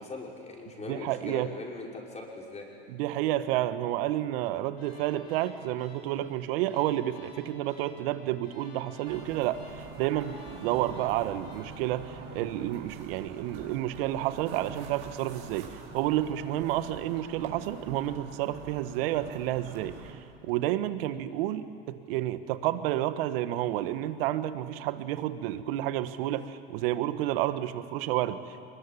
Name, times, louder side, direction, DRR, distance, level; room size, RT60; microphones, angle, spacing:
voice 1, 0.0-2.7, left 3 dB, 20° left, -1 dB, 5.9 m, -40 dB
voice 2, 0.9-1.5 2.9-28.6, right 13 dB, 65° right, 12 dB, 1.5 m, -30 dB
sound 1, 4.8-13.0, left 3 dB, 90° left, 7.7 m, -55 dB
sound 2, 9.0-20.1, right 5 dB, 50° right, 5.9 m, -45 dB
24.5 x 21.5 x 9.9 m, 2.5 s
hypercardioid pair, 100°, 30 cm